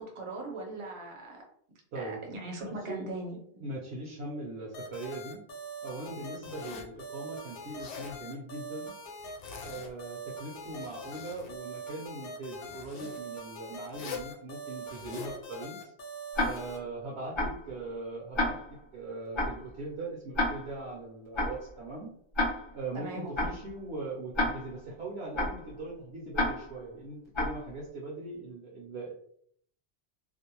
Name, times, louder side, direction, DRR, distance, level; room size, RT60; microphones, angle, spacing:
voice 1, 0.0-1.4 1.9-3.7 22.9-23.6, right 2 dB, 35° right, 0 dB, 0.6 m, -40 dB
voice 2, 2.6-3.1 3.6-5.4 5.8-8.9 9.6-15.9 16.4-18.6 18.9-22.1 22.7-29.1, right 2 dB, 70° right, -3 dB, 0.9 m, -40 dB
sound 1, 4.7-16.8, right 1 dB, 60° left, 0.9 m, -43 dB
Zipper (clothing), 6.4-7.0 7.6-8.2 9.2-10.1 10.5-11.5 12.6-13.2 13.9-14.3 14.8-15.4, left 5 dB, 85° left, 0.9 m, -44 dB
Tick-tock, 16.3-16.8 17.3-17.7 18.3-18.8 19.3-19.7 20.3-20.8 21.3-21.7 22.3-22.8 23.3-23.7 24.3-24.8 25.3-25.7 26.3-26.8 27.3-27.7, left 1 dB, 45° left, 0.4 m, -31 dB
2.5 x 2.1 x 2.8 m, 0.63 s
omnidirectional pair, 1.1 m